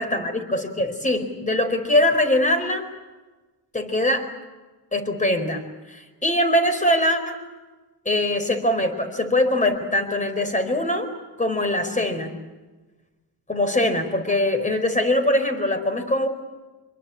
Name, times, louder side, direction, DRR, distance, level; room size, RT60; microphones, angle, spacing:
voice 1, 0.0-2.9 3.7-4.3 4.9-5.6 5.9-7.4 8.0-11.1 11.4-12.4 13.5-16.3, left 1 dB, 20° left, 6 dB, 4.6 m, -22 dB
26.0 x 22.5 x 8.7 m, 1.2 s
cardioid pair, 110°, 37 cm